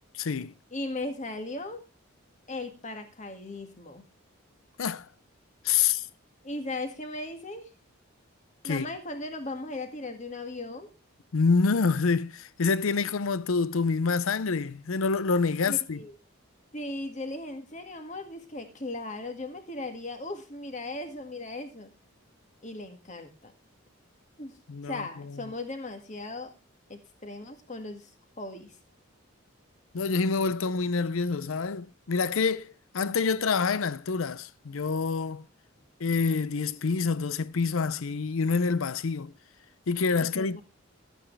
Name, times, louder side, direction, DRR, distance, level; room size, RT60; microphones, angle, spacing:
voice 1, 0.2-0.5 4.8-5.1 5.6-6.1 8.6-8.9 11.3-16.0 24.7-25.4 29.9-35.5 36.0-39.3 39.9-40.6, left 4 dB, 75° left, 0.6 m, -27 dB
voice 2, 0.7-1.8 2.5-4.0 5.8-5.9 6.4-7.7 8.6-10.9 15.7-16.1 16.7-21.9 22.6-23.5 24.4-24.5 24.8-26.5 26.9-28.1 28.4-28.7 40.2-40.6, left 2 dB, 35° left, 1.8 m, -37 dB
12.5 x 9.1 x 3.3 m
head